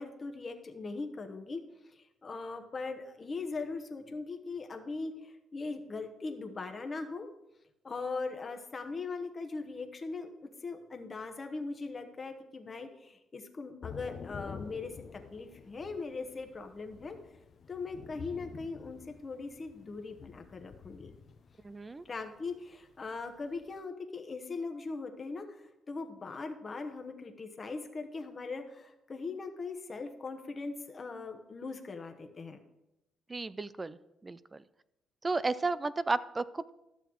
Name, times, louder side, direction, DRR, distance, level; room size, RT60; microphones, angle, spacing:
voice 1, 0.0-7.3 7.8-17.2 17.7-21.2 22.0-32.6, left 3 dB, 35° left, 5 dB, 1.0 m, -40 dB
Thunder / Rain, 13.8-23.8, left 6 dB, 50° left, 0.6 m, -49 dB
voice 2, 21.6-22.0 33.3-34.6 35.2-36.7, right 3 dB, 25° right, 16 dB, 0.3 m, -33 dB
12.0 x 6.9 x 3.1 m, 0.89 s
cardioid pair, 90°, 0 cm